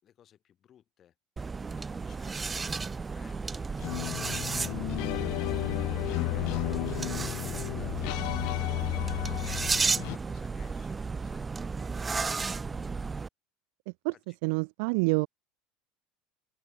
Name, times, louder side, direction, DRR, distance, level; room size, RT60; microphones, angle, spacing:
voice 1, 0.0-1.1 1.7-5.0 7.2-9.4 9.8-11.5 14.1-14.4, left 10 dB, 30° left, 4.1 m, -60 dB
sound 1, 1.4-13.3, right 4 dB, 15° right, 0.7 m, -33 dB
sound 2, 3.8-10.2, left 32 dB, 60° left, 0.3 m, -33 dB
voice 2, 14.4-15.3, right 33 dB, 70° right, 0.6 m, -27 dB
open air
cardioid pair, 160°, 0 cm